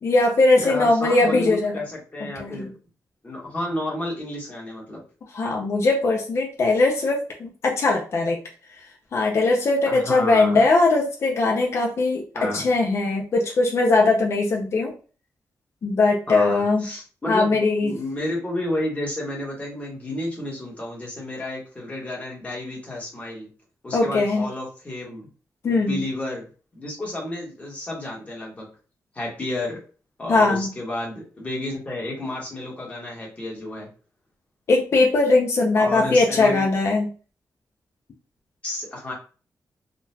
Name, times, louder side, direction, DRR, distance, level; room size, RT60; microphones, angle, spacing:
voice 1, 0.0-1.8 2.4-2.7 5.3-8.4 9.1-14.9 15.8-16.8 17.3-17.9 23.9-24.5 25.6-26.0 30.3-30.7 34.7-37.1, left 3 dB, 45° left, 0 dB, 0.5 m, -20 dB
voice 2, 0.6-2.7 3.2-5.0 9.9-10.6 12.3-12.7 16.3-23.5 23.8-25.3 25.7-26.5 26.7-28.7 29.1-29.8 30.2-33.9 35.8-36.7 38.6-39.1, left 1 dB, 20° left, -2 dB, 1.2 m, -31 dB
3.8 x 2.3 x 2.7 m, 0.37 s
wide cardioid pair, 175°, 6 cm